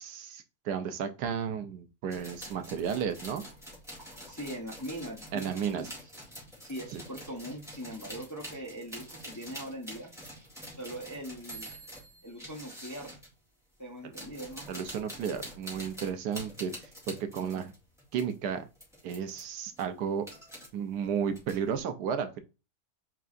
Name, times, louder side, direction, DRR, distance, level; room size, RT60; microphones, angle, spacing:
voice 1, 0.0-3.4 5.3-5.9 6.9-7.0 14.0-14.1 14.7-16.7 17.1-17.7 18.1-18.6 19.0-20.3 20.7-22.4, right 7 dB, 80° right, 1.3 m, -33 dB
sound 1, 2.1-13.3 14.0-18.4 18.7-19.4 19.7-20.7 21.0-21.8, equal, ahead, 2.1 m, -46 dB
voice 2, 4.3-5.9 6.6-10.1 10.7-11.7 12.2-13.2 13.8-14.7, equal, 15° left, 0.8 m, -41 dB
4.7 x 4.5 x 2.5 m
omnidirectional pair, 1.7 m